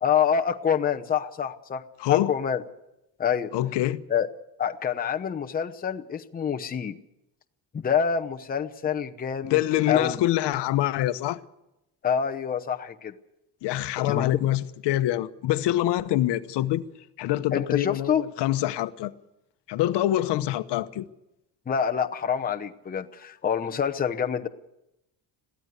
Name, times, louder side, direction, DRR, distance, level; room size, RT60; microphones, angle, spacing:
voice 1, 0.0-1.8 2.1-2.6 3.2-3.5 4.1-4.3 4.6-7.0 7.7-9.6 9.9-10.2 12.0-13.1 14.1-14.3 17.5-18.2 21.7-24.5, left 7 dB, 20° left, 0.8 m, -26 dB
voice 2, 2.0-2.3 3.5-4.0 9.4-11.4 13.6-16.8 17.2-19.1 19.7-21.0, left 14 dB, 85° left, 1.0 m, -25 dB
22.0 x 15.5 x 8.1 m
cardioid pair, 175°, 40 cm